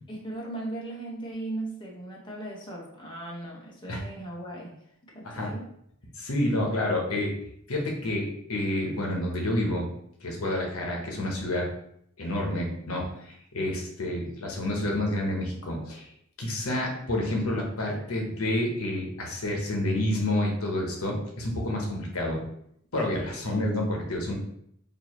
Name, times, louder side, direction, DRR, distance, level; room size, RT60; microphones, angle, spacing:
voice 1, 0.1-4.7 5.1-5.7, right 2 dB, 20° left, -4 dB, 0.9 m, -37 dB
voice 2, 6.2-7.3 7.7-9.9 10.2-11.7 12.2-16.1 16.4-22.4 22.9-24.3, left 1 dB, 85° left, 0 dB, 1.0 m, -29 dB
4.5 x 2.7 x 3.0 m, 0.71 s
head